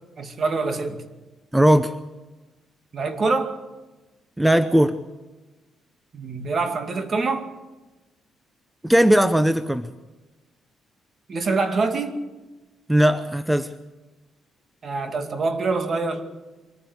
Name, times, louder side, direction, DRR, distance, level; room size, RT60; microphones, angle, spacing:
voice 1, 0.2-1.0 2.9-3.6 6.1-7.5 11.3-12.2 14.8-16.2, right 3 dB, 45° right, 7 dB, 2.4 m, -25 dB
voice 2, 1.5-1.9 4.4-5.0 8.8-9.9 12.9-13.7, right 1 dB, 5° right, 11 dB, 0.8 m, -18 dB
23.5 x 15.0 x 8.2 m, 1.2 s
cardioid pair, 90°, 0 cm